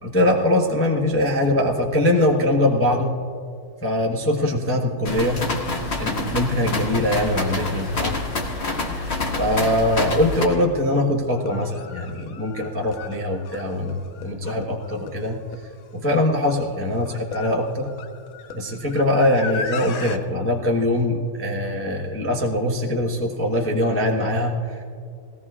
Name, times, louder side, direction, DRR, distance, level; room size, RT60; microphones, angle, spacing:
voice 1, 0.0-3.1 3.8-5.4 6.0-8.1 9.4-15.4 15.9-17.9 18.5-24.8, left 1 dB, 10° left, -1 dB, 0.6 m, -22 dB
sound 1, 5.0-10.5, left 3 dB, 35° left, 1.4 m, -27 dB
sound 2, 11.3-20.2, left 6 dB, 65° left, 0.9 m, -36 dB
20.5 x 17.0 x 2.4 m, 2.3 s
omnidirectional pair, 2.2 m